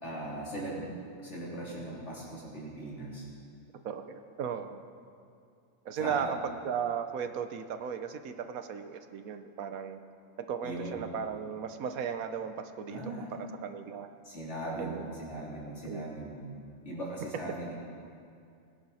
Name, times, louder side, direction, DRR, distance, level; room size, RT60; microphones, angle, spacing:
voice 1, 0.0-0.8 1.1-3.3 6.0-6.4 10.6-11.1 12.9-13.3 14.2-16.5 16.8-17.7, right 1 dB, 55° left, -6 dB, 3.7 m, -39 dB
voice 2, 3.8-4.8 5.8-10.0 10.5-13.3 13.6-14.1 14.8-15.1 15.8-16.2, right 7 dB, 80° right, 8 dB, 1.2 m, -36 dB
20.5 x 10.5 x 4.2 m, 2.4 s
omnidirectional pair, 1.5 m